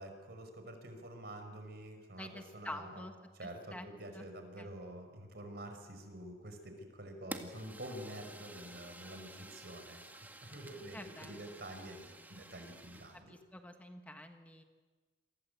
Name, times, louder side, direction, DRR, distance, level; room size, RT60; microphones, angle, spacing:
voice 1, 0.0-3.0 3.3-10.0 10.4-13.3, right 1 dB, 65° right, 6 dB, 5.4 m, -48 dB
voice 2, 2.2-3.1 3.4-3.9 4.1-4.3 4.6-4.7 10.9-11.4 13.1-14.6, left 1 dB, 10° left, 5 dB, 1.5 m, -48 dB
Fire, 7.3-13.2, right 1 dB, 10° right, 1.9 m, -51 dB
28.0 x 24.0 x 8.2 m, 1.3 s
head